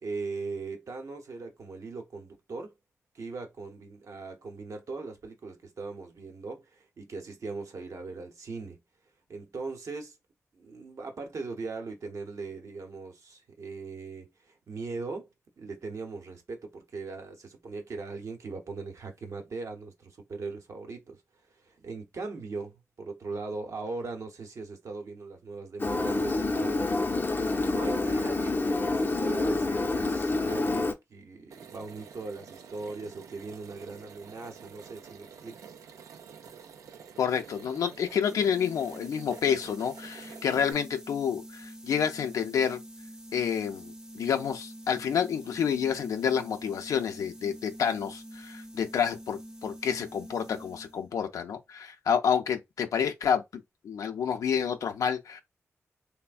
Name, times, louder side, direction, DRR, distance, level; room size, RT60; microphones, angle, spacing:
voice 1, 0.0-2.7 3.1-8.8 9.3-10.2 10.5-15.3 15.6-21.2 21.5-26.9 27.6-35.6, right 3 dB, 65° right, 0.8 m, -39 dB
Engine, 25.8-30.9, left 2 dB, 40° left, 0.5 m, -27 dB
sound 1, 31.5-40.7, right 7 dB, 85° right, 0.4 m, -49 dB
voice 2, 37.2-42.8 43.3-55.4, left 7 dB, 90° left, 0.4 m, -29 dB
sound 2, 38.2-51.1, equal, 15° right, 0.5 m, -46 dB
3.2 x 2.1 x 2.4 m
cardioid pair, 50°, 6 cm